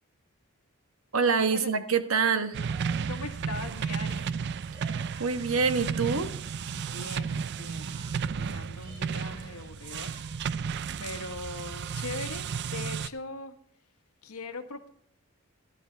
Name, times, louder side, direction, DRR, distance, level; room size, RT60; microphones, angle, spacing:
voice 1, 1.1-2.6 4.8-4.9 5.2-6.3, right 5 dB, 70° right, 9 dB, 1.2 m, -26 dB
sound 1, 2.5-13.1, right 6 dB, 50° right, 0.4 m, -33 dB
Singing, 2.6-6.4 6.7-8.4 8.7-10.6, right 2 dB, 25° right, 5.6 m, -54 dB
voice 2, 3.1-4.3 6.7-8.0 8.3-10.2 11.0-13.6 14.2-14.9, left 3 dB, 90° left, 8 dB, 1.4 m, -40 dB
14.5 x 11.5 x 3.4 m, 0.65 s
head